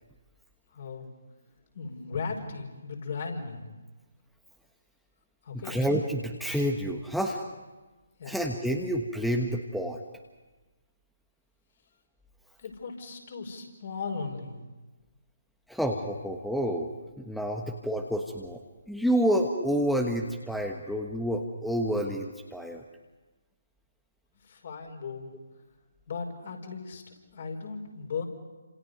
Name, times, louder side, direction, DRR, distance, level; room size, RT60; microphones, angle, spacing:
voice 1, 0.7-1.1 1.7-3.6 5.4-5.8 8.2-8.4 12.6-14.6 24.4-25.3 26.1-27.0 27.3-28.2, left 5 dB, 50° left, 2 dB, 5.2 m, -37 dB
voice 2, 5.6-7.4 8.2-10.0 15.7-16.9 17.2-18.6 18.9-22.8, equal, ahead, 2 dB, 1.4 m, -29 dB
30.0 x 27.0 x 5.4 m, 1.2 s
figure-of-eight pair, 140°, 0 cm